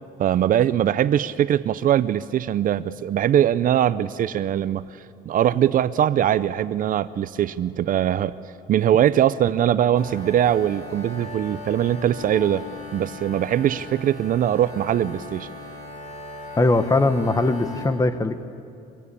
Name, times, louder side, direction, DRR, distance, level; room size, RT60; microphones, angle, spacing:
voice 1, 0.2-4.8 5.3-8.4 8.7-12.6 12.9-15.5, right 10 dB, 55° right, 15 dB, 0.7 m, -21 dB
sound 1, 10.0-17.9, left 2 dB, 50° left, 6.9 m, -38 dB
voice 2, 16.6-18.5, left 2 dB, 20° left, 10 dB, 1.5 m, -20 dB
25.5 x 23.5 x 8.6 m, 2.4 s
cardioid pair, 110°, 17 cm